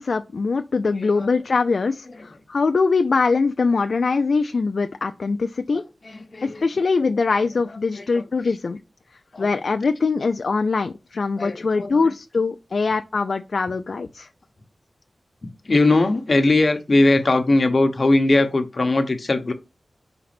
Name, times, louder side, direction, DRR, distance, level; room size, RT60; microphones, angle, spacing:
voice 1, 0.0-5.8 6.4-8.8 9.4-14.3, left 4 dB, 70° left, 0.4 m, -22 dB
voice 2, 1.0-1.3 2.1-2.3 5.7-6.6 7.5-7.6 7.9-8.6 9.3-9.5 11.4-12.1 12.8-12.9 15.6-19.5, left 2 dB, 45° left, 1.0 m, -21 dB
5.2 x 4.0 x 5.8 m
wide cardioid pair, 100°, 0 cm